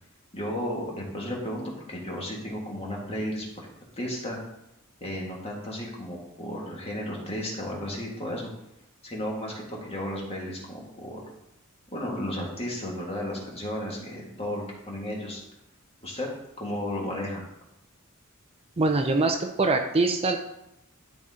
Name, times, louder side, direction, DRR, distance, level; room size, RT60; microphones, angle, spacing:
voice 1, 0.3-3.7 4.0-4.4 5.0-8.5 9.0-11.2 11.9-15.4 16.0-16.3 16.6-17.5, left 1 dB, 30° left, -2 dB, 2.0 m, -33 dB
voice 2, 18.8-20.4, right 3 dB, 30° right, 4 dB, 0.5 m, -23 dB
12.0 x 4.2 x 3.8 m, 0.85 s
head